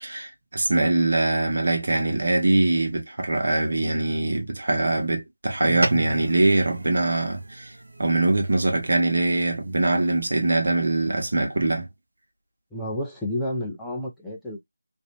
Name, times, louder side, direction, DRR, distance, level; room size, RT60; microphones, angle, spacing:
voice 1, 0.0-7.7 8.0-11.9, right 2 dB, 55° right, 0.9 m, -23 dB
sound 1, 5.7-10.3, right 2 dB, 80° right, 0.6 m, -34 dB
voice 2, 12.7-14.6, left 1 dB, ahead, 0.4 m, -30 dB
2.6 x 2.0 x 2.8 m
figure-of-eight pair, 170°, 0 cm